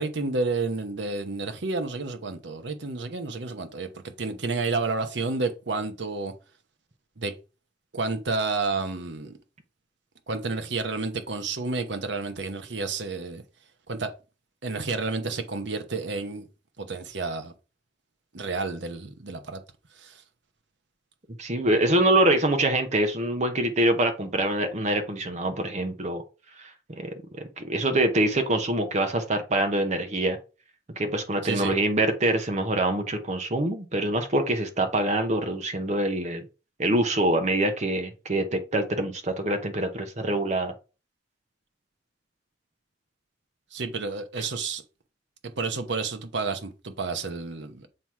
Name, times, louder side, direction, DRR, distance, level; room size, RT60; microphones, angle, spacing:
voice 1, 0.0-6.3 7.2-7.3 7.9-9.4 10.3-13.4 13.9-14.1 14.6-16.5 16.8-17.5 18.3-19.6 20.0-20.2 31.4-31.7 43.7-44.8 45.4-47.9, right 3 dB, 70° right, 0.9 m, -30 dB
voice 2, 21.4-26.2 26.6-26.7 27.0-27.1 27.6-30.4 31.0-36.4 36.8-40.7, right 1 dB, 40° right, 0.8 m, -25 dB
7.5 x 3.0 x 4.7 m
head